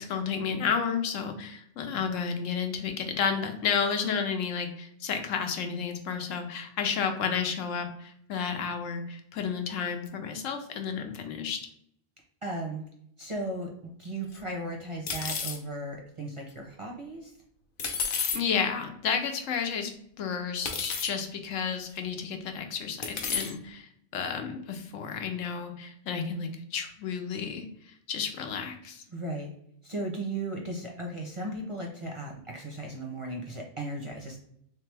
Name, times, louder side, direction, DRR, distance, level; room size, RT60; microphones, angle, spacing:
voice 1, 0.0-11.6 18.3-19.9 20.2-27.7 28.1-29.0, left 6 dB, 85° left, 5 dB, 1.0 m, -31 dB
voice 2, 12.4-12.8 13.2-17.3 29.1-29.5 29.8-34.4, right 2 dB, 35° right, -1 dB, 0.5 m, -36 dB
sound 1, 14.3-14.4 15.1-15.6 17.8-18.4 19.4-19.5 20.7-21.1 22.0-22.1 23.0-23.5, left 6 dB, 55° left, 0.7 m, -31 dB
3.3 x 3.2 x 3.3 m, 0.72 s
omnidirectional pair, 1.3 m